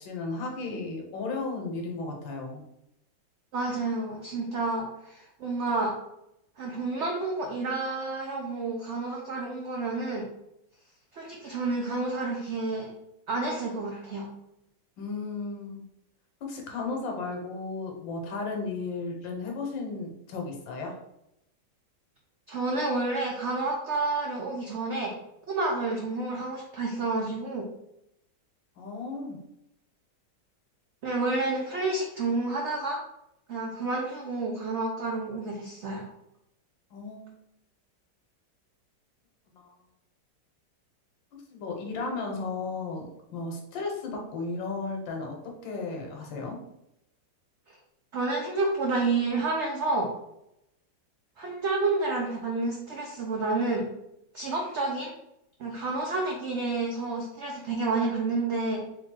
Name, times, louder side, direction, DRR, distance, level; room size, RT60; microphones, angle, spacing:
voice 1, 0.0-2.6 15.0-15.8 16.4-21.0 28.8-29.4 36.9-37.3 39.5-39.7 41.3-46.6, left 3 dB, 80° left, 1 dB, 1.7 m, -34 dB
voice 2, 3.5-5.9 6.6-10.3 11.1-12.9 13.3-14.3 22.5-25.1 25.5-27.7 31.0-33.0 33.5-36.1 48.1-50.1 51.4-53.9 54.3-55.1 55.6-59.0, right 3 dB, 70° right, -1 dB, 0.6 m, -29 dB
3.5 x 3.4 x 3.7 m, 0.83 s
omnidirectional pair, 2.0 m